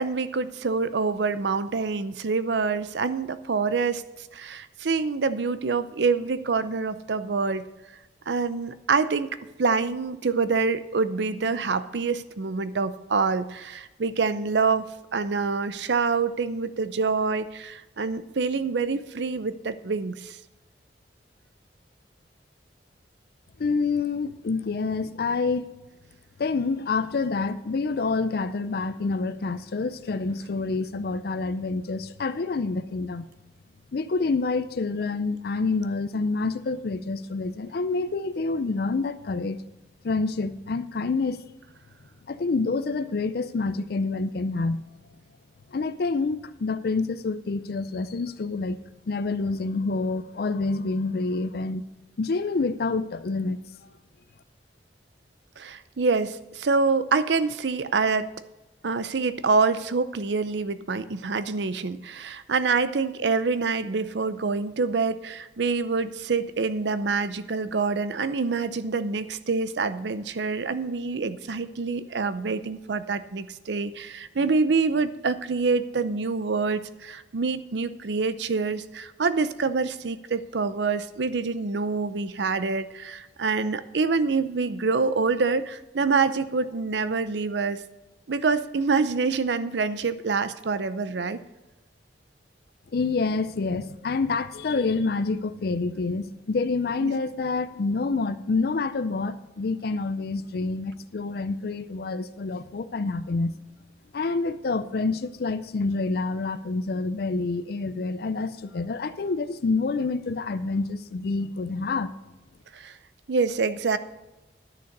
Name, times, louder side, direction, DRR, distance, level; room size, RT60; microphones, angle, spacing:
voice 1, 0.0-4.0 4.3-7.6 8.3-20.4 55.6-58.3 58.8-87.8 88.3-91.4 97.0-97.1 112.7-112.9 113.3-114.0, right 4 dB, 80° right, 0.6 m, -26 dB
voice 2, 23.6-25.7 26.4-33.3 33.9-39.6 40.0-41.4 42.3-44.8 45.7-51.8 52.2-53.6 92.9-103.6 104.1-112.1, left 3 dB, 60° left, 0.4 m, -27 dB
10.5 x 6.6 x 6.6 m
head